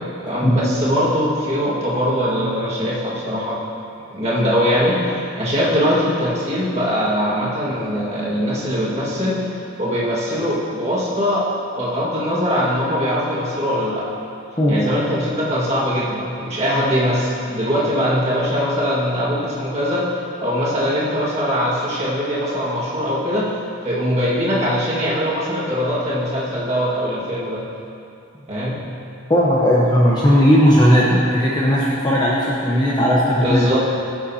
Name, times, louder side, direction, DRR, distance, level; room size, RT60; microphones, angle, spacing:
voice 1, 0.2-3.6 4.1-9.4 9.8-11.5 11.8-14.2 14.7-20.1 20.4-23.6 23.8-27.6 28.5-28.8 33.4-33.8, equal, 30° right, -7 dB, 1.9 m, -21 dB
voice 2, 29.3-33.7, equal, 20° left, -6 dB, 0.9 m, -16 dB
16.0 x 6.9 x 2.8 m, 2.6 s
head